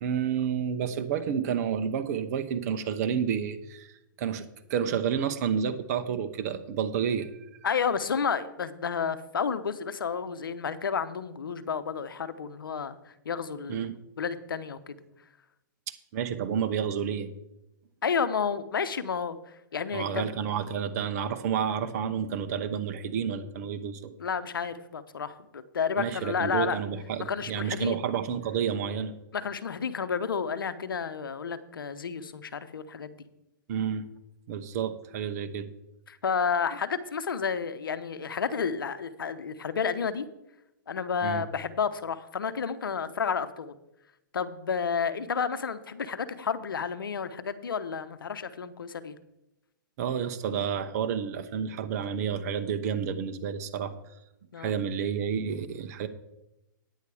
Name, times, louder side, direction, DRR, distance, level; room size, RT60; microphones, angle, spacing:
voice 1, 0.0-3.9 4.2-7.3 13.7-14.0 15.9-17.3 19.9-24.1 26.0-29.1 33.7-34.1 34.5-35.7 41.2-41.4 50.0-53.9 54.6-56.1, right 7 dB, 50° right, 9 dB, 0.9 m, -30 dB
voice 2, 7.6-13.0 13.2-13.9 14.2-15.0 18.0-19.4 19.7-20.3 24.2-26.8 27.2-28.0 29.3-33.2 36.1-40.3 40.9-43.8 44.3-49.2 54.5-54.7, left 6 dB, 85° left, 12 dB, 0.8 m, -31 dB
10.0 x 8.4 x 4.8 m, 0.90 s
hypercardioid pair, 130°, 11 cm